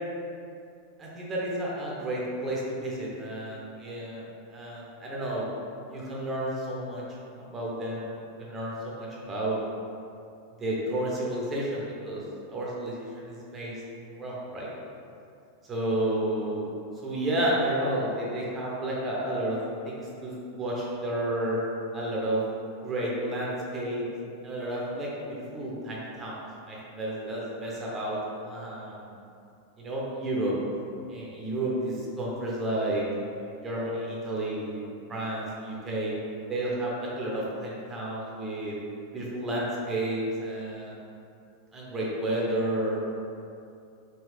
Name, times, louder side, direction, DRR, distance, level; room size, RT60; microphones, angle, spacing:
voice 1, 1.0-5.5 5.9-7.0 7.4-9.6 10.6-12.2 12.5-13.8 14.1-14.7 15.7-16.7 17.0-19.6 19.8-21.6 21.9-22.4 22.8-24.1 24.4-26.4 26.7-29.1 29.8-30.5 31.1-33.0 33.6-36.2 36.5-38.7 39.1-41.0 41.7-43.0, right 1 dB, 20° right, -5 dB, 0.8 m, -31 dB
3.7 x 2.7 x 3.2 m, 2.5 s
figure-of-eight pair, 90°, 0 cm